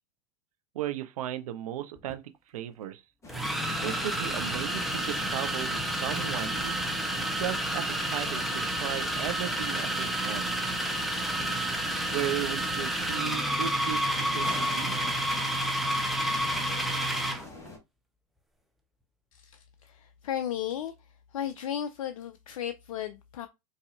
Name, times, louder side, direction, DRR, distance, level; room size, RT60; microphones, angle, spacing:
voice 1, 0.7-2.2 2.5-3.0 3.8-6.8 7.4-10.6 12.1-15.0, right 11 dB, 70° right, 0.6 m, -36 dB
sound 1, 2.0-2.1 3.3-17.5, right 1 dB, ahead, 0.6 m, -30 dB
sound 2, 3.2-17.8, left 3 dB, 15° left, 1.2 m, -44 dB
voice 2, 19.3-20.9 21.3-23.5, left 10 dB, 70° left, 0.4 m, -35 dB
4.2 x 2.6 x 2.4 m
hypercardioid pair, 100°, 19 cm